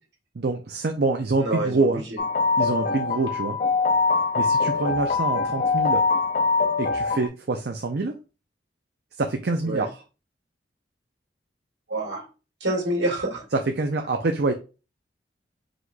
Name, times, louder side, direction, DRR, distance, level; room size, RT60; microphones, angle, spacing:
voice 1, 0.4-2.0 2.6-3.6 4.3-6.0 6.8-8.1 9.2-9.9 13.5-14.5, right 3 dB, 60° right, 4 dB, 0.6 m, -25 dB
voice 2, 1.4-2.2 9.6-9.9 11.9-12.3 12.6-13.4, right 1 dB, 80° right, -1 dB, 2.0 m, -27 dB
sound 1, 2.2-7.3, left 4 dB, 45° left, 0.4 m, -23 dB
4.9 x 4.0 x 2.3 m, 0.31 s
head